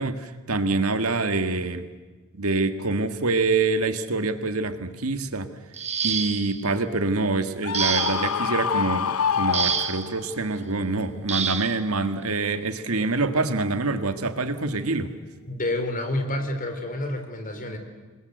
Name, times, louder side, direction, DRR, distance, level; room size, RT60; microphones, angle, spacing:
voice 1, 0.0-1.8 2.3-5.5 6.0-15.1, right 3 dB, 80° right, 9 dB, 1.8 m, -26 dB
sound 1, 5.7-6.6 7.7-8.4 9.5-10.1 11.3-11.8 13.0-13.1 13.6-13.8, right 7 dB, 30° right, 1.4 m, -27 dB
Screaming, 7.6-10.3, left 7 dB, 80° left, 0.7 m, -26 dB
voice 2, 15.5-17.8, left 1 dB, 40° left, 6 dB, 3.8 m, -28 dB
27.5 x 21.0 x 8.1 m, 1.3 s
head